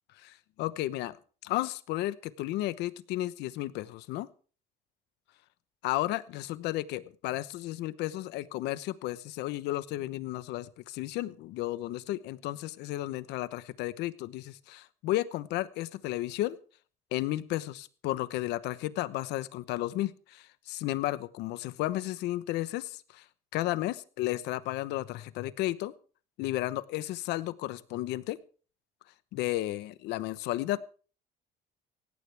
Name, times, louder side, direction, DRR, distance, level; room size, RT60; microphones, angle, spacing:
voice 1, 0.2-1.2 1.4-4.3 5.8-16.6 17.1-23.2 23.5-25.9 26.4-28.4 29.3-30.8, left 16 dB, 90° left, 16 dB, 1.0 m, -33 dB
18.0 x 16.0 x 3.4 m, 0.40 s
cardioid pair, 110°, 17 cm